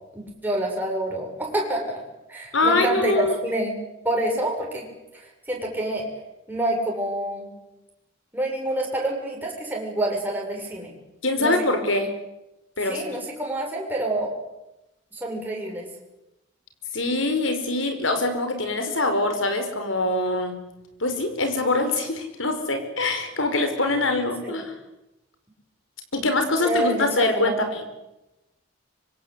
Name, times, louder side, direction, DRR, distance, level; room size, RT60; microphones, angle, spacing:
voice 1, 0.1-2.0 2.3-3.8 4.0-4.9 5.1-6.1 6.5-7.6 8.3-10.9 11.4-11.5 12.9-14.3 15.1-15.9 24.4-24.6 26.6-27.7, right 1 dB, 10° right, -1 dB, 7.0 m, -27 dB
voice 2, 2.5-3.4 11.2-12.1 12.8-13.0 16.9-20.6 21.0-24.7 26.1-27.9, left 2 dB, 75° left, 7 dB, 5.1 m, -24 dB
25.5 x 24.5 x 8.3 m, 0.93 s
head